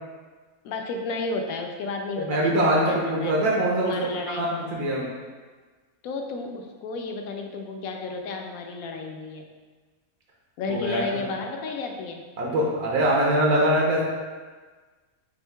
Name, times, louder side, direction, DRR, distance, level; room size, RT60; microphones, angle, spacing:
voice 1, 0.6-3.3 3.8-4.4 6.0-9.4 10.6-12.2, left 3 dB, 75° left, 3 dB, 1.0 m, -32 dB
voice 2, 2.2-5.1 10.7-11.0 12.4-14.0, right 1 dB, 80° right, -4 dB, 1.3 m, -23 dB
4.4 x 2.7 x 4.4 m, 1.4 s
omnidirectional pair, 1.5 m